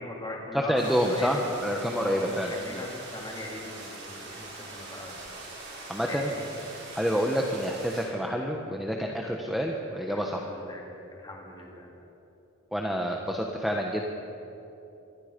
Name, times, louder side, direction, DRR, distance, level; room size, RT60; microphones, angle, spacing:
voice 1, 0.0-1.5 2.0-5.2 6.0-6.4 10.1-11.9, left 1 dB, 20° left, -2 dB, 3.9 m, -40 dB
voice 2, 0.5-2.8 5.9-6.3 6.9-10.4 12.7-14.0, equal, ahead, 0 dB, 1.2 m, -28 dB
sound 1, 0.8-8.0, right 2 dB, 55° right, 6.8 m, -43 dB
25.5 x 22.0 x 5.3 m, 2.9 s
head